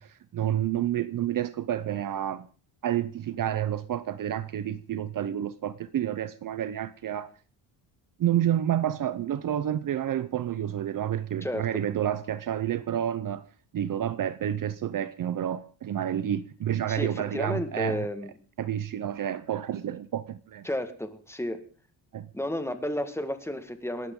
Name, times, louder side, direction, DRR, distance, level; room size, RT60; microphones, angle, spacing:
voice 1, 0.0-2.5 2.8-7.3 8.2-13.5 13.7-18.1 18.6-20.7 22.1-22.3, right 10 dB, 45° right, 0.8 m, -29 dB
voice 2, 16.9-18.3 20.6-21.6 22.3-24.1, left 1 dB, 5° left, 1.7 m, -32 dB
27.5 x 13.0 x 3.8 m
cardioid pair, 165°, 45 cm